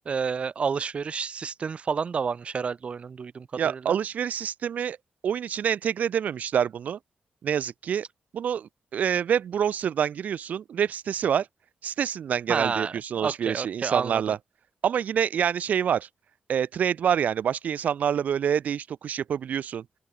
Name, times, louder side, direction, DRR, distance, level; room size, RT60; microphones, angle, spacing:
voice 1, 0.0-4.0 12.5-14.3, right 6 dB, 50° right, 2.3 m, -30 dB
voice 2, 3.6-5.0 5.2-7.0 7.4-8.1 8.3-11.5 11.8-14.4 14.8-16.1 16.5-19.8, right 8 dB, 75° right, 2.1 m, -26 dB
open air
wide cardioid pair, 115°, 3 cm